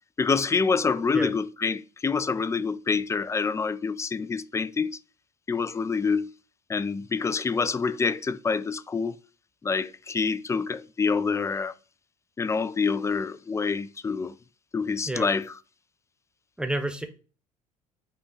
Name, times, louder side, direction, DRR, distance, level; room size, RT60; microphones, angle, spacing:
voice 1, 0.2-5.0 5.5-6.3 6.7-9.2 9.6-11.7 12.4-14.3 14.7-15.5, left 5 dB, 15° left, 0.3 m, -26 dB
voice 2, 16.6-17.1, right 1 dB, 5° right, 0.9 m, -29 dB
5.1 x 2.3 x 3.9 m
hypercardioid pair, 65°, 18 cm